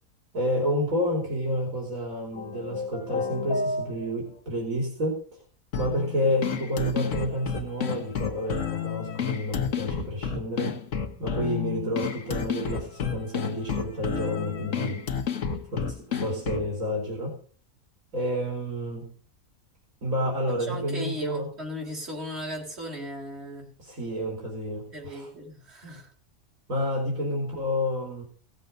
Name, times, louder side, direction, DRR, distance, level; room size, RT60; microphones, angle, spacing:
voice 1, 0.3-5.4 5.8-10.8 11.2-15.1 15.7-17.4 18.1-19.1 20.0-21.5 23.8-25.3 26.7-28.2, equal, 70° right, 0 dB, 3.5 m, -29 dB
sound 1, 2.3-4.4, left 2 dB, 80° left, 1.7 m, -31 dB
sound 2, 5.7-16.7, left 7 dB, 60° left, 1.5 m, -31 dB
voice 2, 20.5-23.8 24.9-26.1, equal, 50° right, 0 dB, 4.4 m, -37 dB
17.0 x 7.7 x 5.2 m, 0.41 s
omnidirectional pair, 1.5 m